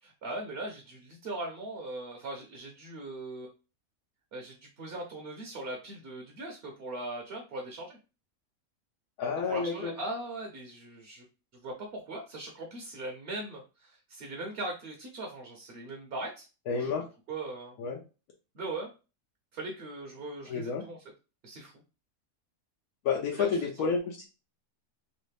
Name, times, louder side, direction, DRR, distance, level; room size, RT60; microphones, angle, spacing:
voice 1, 0.0-3.5 4.3-8.0 9.5-11.2 11.6-16.5 16.8-16.9 17.3-17.7 18.5-18.9 19.5-21.0 21.4-21.7 23.3-23.5 23.8-24.0, right 2 dB, 55° right, 1 dB, 0.8 m, -39 dB
voice 2, 9.2-9.9 16.7-17.1 17.8-18.0 20.5-20.8 23.0-24.3, left 5 dB, 80° left, 0 dB, 1.1 m, -30 dB
3.1 x 2.5 x 3.2 m, 0.31 s
omnidirectional pair, 1.5 m